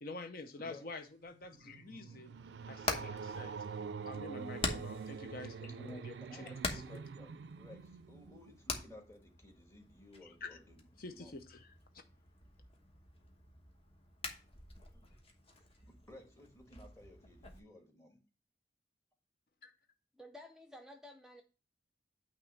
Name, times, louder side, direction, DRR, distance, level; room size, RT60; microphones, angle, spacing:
voice 1, 0.0-2.4 2.7-3.5 4.0-6.8 10.4-10.6 11.0-11.7 19.6-19.7, left 3 dB, 55° left, 0.6 m, -47 dB
voice 2, 0.5-0.9 2.1-2.2 5.8-10.8 11.0-11.4 14.9-15.1 15.8-18.2, left 1 dB, 15° left, 1.5 m, -56 dB
sound 1, 1.3-8.7, right 5 dB, 75° right, 0.4 m, -45 dB
Hammer, 2.3-17.6, left 3 dB, 35° left, 1.1 m, -46 dB
voice 3, 20.1-21.4, left 1 dB, 5° right, 0.5 m, -53 dB
8.9 x 3.0 x 6.2 m
head